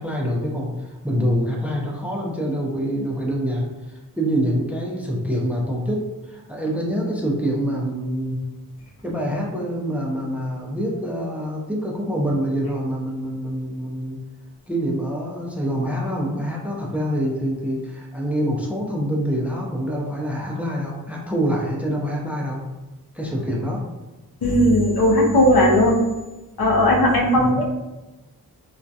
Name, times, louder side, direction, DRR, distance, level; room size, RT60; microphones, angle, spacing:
voice 1, 0.0-8.4 9.0-14.2 14.7-22.7 23.1-23.8 27.3-27.6, equal, 5° right, -2 dB, 0.4 m, -25 dB
voice 2, 24.4-26.0 26.6-27.6, left 1 dB, 80° left, -2 dB, 0.6 m, -17 dB
2.3 x 2.1 x 2.6 m, 1.1 s
wide cardioid pair, 75°, 37 cm